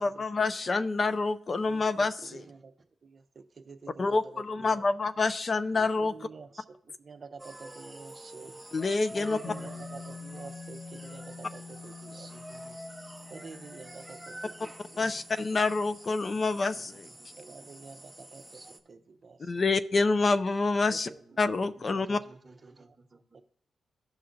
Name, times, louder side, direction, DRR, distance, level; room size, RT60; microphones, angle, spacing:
voice 1, 0.0-2.4 4.0-6.1 8.7-9.4 15.0-17.1 19.4-21.1 21.4-22.2, left 3 dB, 40° left, 12 dB, 0.4 m, -27 dB
voice 2, 1.7-2.7 3.0-4.9 6.0-6.6 7.0-8.6 9.1-12.3 13.3-15.1 17.4-19.5 20.9-21.4 22.0-22.2 22.6-23.0 23.3-23.4, right 4 dB, 45° right, 8 dB, 0.5 m, -49 dB
voice 3, 5.7-6.1 9.4-10.0 12.1-12.8 16.7-16.8 17.2-17.5 18.5-18.7 21.2-23.4, right 3 dB, 30° right, 5 dB, 1.1 m, -55 dB
sound 1, 7.4-18.8, right 1 dB, 5° right, 0.9 m, -47 dB
sound 2, 9.4-17.9, left 4 dB, 65° left, 1.2 m, -47 dB
16.0 x 5.6 x 2.5 m, 0.67 s
cardioid pair, 85°, 0 cm